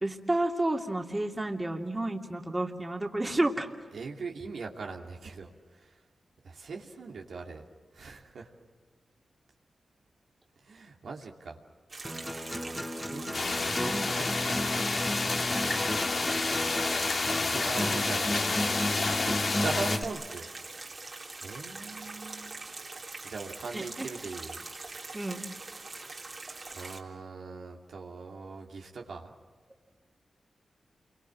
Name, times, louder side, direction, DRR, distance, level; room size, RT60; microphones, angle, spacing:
voice 1, 0.0-3.7 16.3-16.5 23.7-24.1 25.1-25.4, right 1 dB, 25° right, 2 dB, 2.8 m, -31 dB
voice 2, 3.9-6.0 6.4-7.6 7.9-8.5 10.6-11.6 13.0-14.7 17.2-18.4 18.7-22.5 23.2-24.6 26.7-29.3, right 4 dB, 80° right, 1 dB, 2.6 m, -41 dB
sound 1, 11.9-27.0, right 3 dB, 50° right, 3.4 m, -43 dB
Acoustic guitar, 12.0-20.0, equal, 10° left, 1.9 m, -34 dB
sound 2, 13.3-20.0, left 3 dB, 60° left, 2.1 m, -30 dB
28.5 x 24.5 x 7.6 m, 1.4 s
cardioid pair, 50°, 0 cm